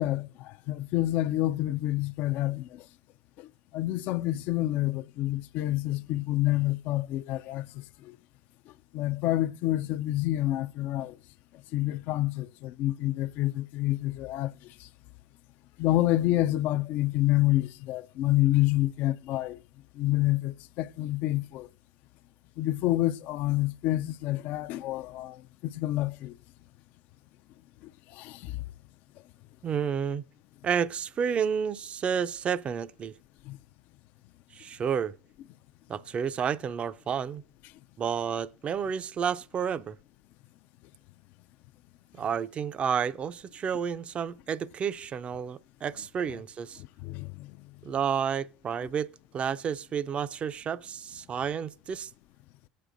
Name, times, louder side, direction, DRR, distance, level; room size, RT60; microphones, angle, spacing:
voice 1, 0.0-2.8 3.4-3.5 3.7-7.7 8.0-8.2 8.9-11.2 11.7-14.5 15.8-19.6 20.0-21.7 22.6-25.4 25.6-26.4 28.1-28.6 33.5-33.6 47.0-47.5, left 16 dB, 65° left, 0.4 m, -28 dB
voice 2, 29.6-30.2 30.6-33.1 34.5-35.1 35.9-37.4 38.0-40.0 42.1-46.8 47.8-49.1 49.3-52.1, right 7 dB, 40° right, 0.4 m, -30 dB
18.5 x 8.3 x 2.5 m
hypercardioid pair, 80°, 3 cm